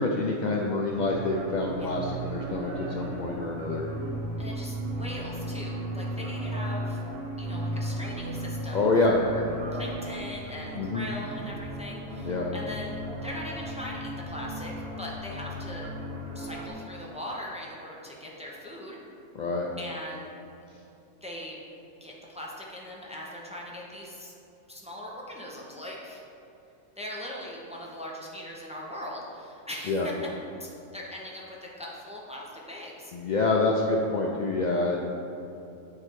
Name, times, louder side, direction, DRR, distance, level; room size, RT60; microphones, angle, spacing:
voice 1, 0.0-3.9 8.7-9.2 10.8-11.1 12.2-12.5 19.4-19.7 29.9-30.1 33.1-35.0, left 3 dB, 80° left, -1 dB, 0.4 m, -27 dB
sound 1, 0.9-16.7, right 1 dB, 55° right, 1.1 m, -35 dB
voice 2, 4.4-7.0 7.4-9.4 9.7-15.9 16.3-19.0 19.8-20.3 21.2-21.6 22.0-24.3 24.7-26.2 27.0-30.3 30.6-33.1, left 1 dB, 5° right, -4 dB, 0.6 m, -40 dB
8.6 x 3.3 x 4.6 m, 2.8 s
omnidirectional pair, 1.3 m